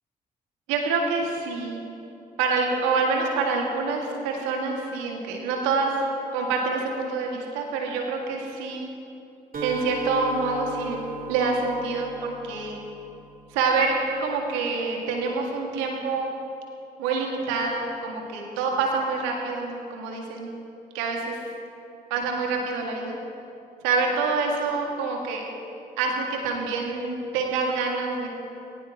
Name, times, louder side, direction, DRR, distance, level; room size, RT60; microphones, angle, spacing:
voice 1, 0.7-1.8 2.4-6.1 6.3-8.9 9.6-11.0 11.3-12.8 13.5-13.9 14.2-16.3 17.0-20.5 20.9-21.4 22.1-23.2 23.8-25.4 26.0-28.3, right 4 dB, 75° right, 1 dB, 2.1 m, -26 dB
Acoustic guitar, 9.5-13.4, equal, 45° right, 3.6 m, -37 dB
20.5 x 18.5 x 3.0 m, 2.7 s
figure-of-eight pair, 40°, 20 cm